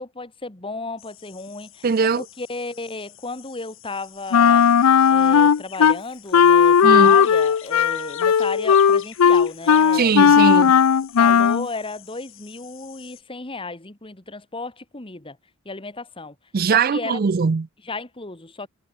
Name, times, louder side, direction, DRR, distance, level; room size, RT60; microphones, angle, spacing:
voice 1, 0.0-1.8 2.2-4.7 5.1-10.1 11.2-15.4 15.6-16.3 16.7-17.2 17.8-18.7, left 3 dB, 25° left, 1.7 m, -34 dB
sound 1, 1.0-13.2, left 13 dB, 60° left, 7.1 m, -47 dB
voice 2, 1.8-2.2 6.8-7.2 9.9-10.7 16.5-17.7, right 5 dB, 45° right, 0.5 m, -20 dB
Wind instrument woodwind instrument, 4.3-6.0 6.3-11.7, left 7 dB, 85° left, 0.5 m, -15 dB
head